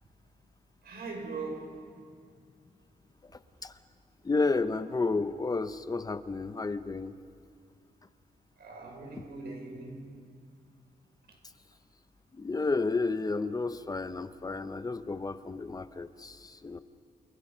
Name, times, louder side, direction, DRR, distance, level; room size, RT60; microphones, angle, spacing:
voice 1, 0.8-1.8 8.6-10.1, right 3 dB, 80° right, 1 dB, 5.7 m, -40 dB
voice 2, 4.2-7.1 12.3-16.8, left 3 dB, 25° left, 12 dB, 0.7 m, -31 dB
29.0 x 28.0 x 5.6 m, 2.3 s
wide cardioid pair, 160°, 16 cm